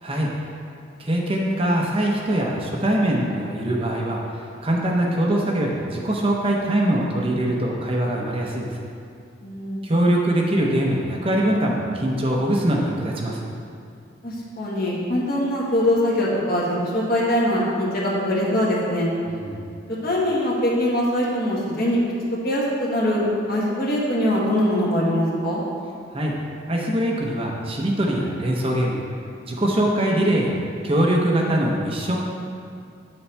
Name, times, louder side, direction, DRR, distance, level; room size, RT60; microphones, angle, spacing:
voice 1, 1.0-4.2 4.6-8.8 9.8-13.5 19.3-19.6 26.1-26.3 26.7-29.0 29.4-30.5 30.8-32.2, right 1 dB, 30° right, -2 dB, 0.8 m, -22 dB
voice 2, 9.4-9.9 14.2-19.1 20.0-22.0 22.4-25.6, left 1 dB, 50° left, -5 dB, 1.7 m, -22 dB
8.4 x 7.0 x 3.4 m, 2.5 s
head